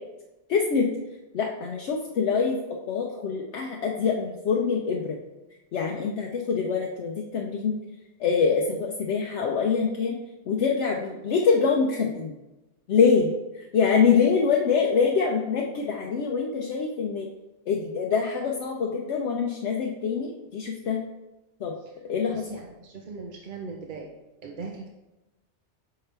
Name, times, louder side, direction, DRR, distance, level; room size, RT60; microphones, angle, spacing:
voice 1, 0.5-0.9 1.3-2.6 2.9-5.2 5.7-7.8 8.2-10.2 10.5-12.3 12.9-17.3 17.7-21.0 21.6-21.7 22.1-22.4, left 5 dB, 70° left, 0 dB, 0.9 m, -25 dB
voice 2, 22.3-24.1 24.4-24.9, right 4 dB, 50° right, 1 dB, 0.7 m, -39 dB
6.5 x 5.7 x 3.3 m, 1.0 s
omnidirectional pair, 1.2 m